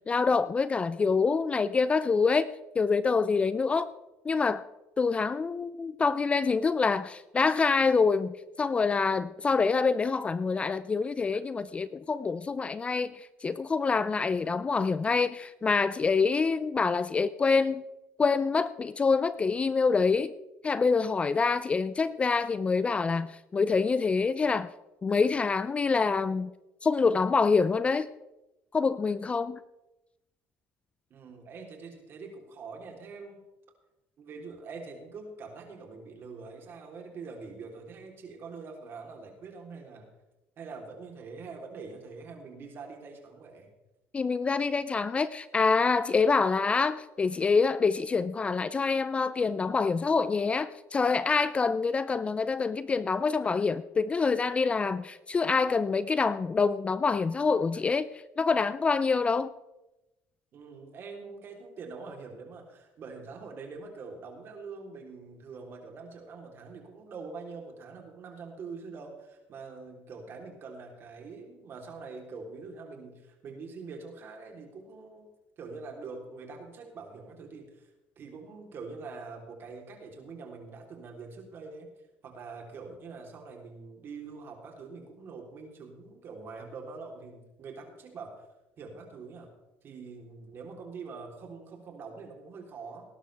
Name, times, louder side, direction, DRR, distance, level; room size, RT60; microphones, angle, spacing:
voice 1, 0.1-2.5 2.8-3.9 4.2-4.6 5.0-17.8 18.2-20.3 20.6-24.7 25.0-26.5 26.8-28.1 28.7-29.6 44.1-58.1 58.4-59.5, left 4 dB, 20° left, 16 dB, 0.4 m, -26 dB
voice 2, 31.1-33.4 34.2-40.1 40.6-43.7 60.5-75.3 75.6-77.9 78.2-81.9 82.2-88.5 88.8-89.5 89.8-93.0, right 4 dB, 45° right, 2 dB, 3.4 m, -44 dB
19.0 x 11.0 x 3.4 m, 0.96 s
cardioid pair, 115°, 5 cm